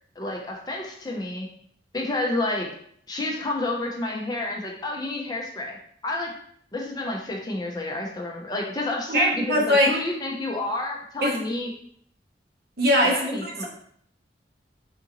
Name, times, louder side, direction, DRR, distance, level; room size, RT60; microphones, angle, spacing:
voice 1, 0.2-1.5 1.9-2.7 3.1-5.8 6.0-6.3 6.7-11.7 13.0-13.6, left 2 dB, 20° left, 0 dB, 0.5 m, -30 dB
voice 2, 9.1-9.9 11.2-11.3 12.8-13.6, equal, 60° right, -1 dB, 0.7 m, -21 dB
3.7 x 2.5 x 2.8 m, 0.65 s
head